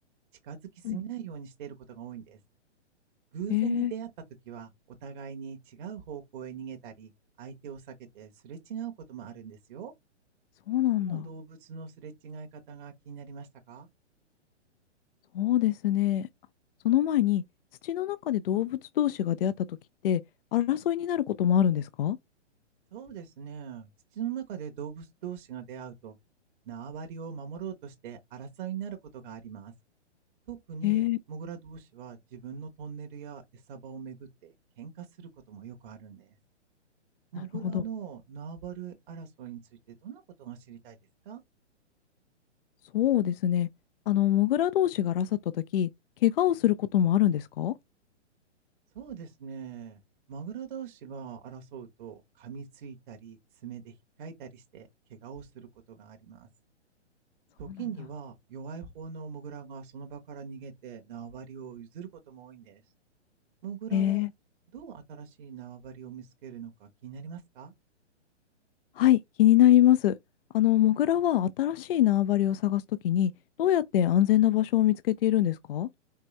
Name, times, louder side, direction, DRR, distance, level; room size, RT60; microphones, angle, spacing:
voice 1, 0.4-2.4 3.3-4.1 4.5-4.7 5.0-7.1 7.4-9.9 10.9-13.9 22.9-26.1 26.6-29.7 30.5-36.4 37.3-39.6 39.9-41.0 41.2-41.4 48.9-50.0 50.3-56.5 57.6-62.8 63.6-64.3 64.7-67.7, right 7 dB, 45° right, 1.0 m, -41 dB
voice 2, 3.5-3.9 10.7-11.3 15.3-16.3 16.8-17.4 17.8-19.7 20.0-20.2 20.5-22.2 30.8-31.2 37.6-37.8 42.9-43.7 44.1-45.9 46.2-47.7 57.7-57.8 63.9-64.3 69.0-70.1 70.5-73.3 73.6-75.9, left 12 dB, 55° left, 0.4 m, -24 dB
4.6 x 3.2 x 3.1 m
hypercardioid pair, 135°, 35 cm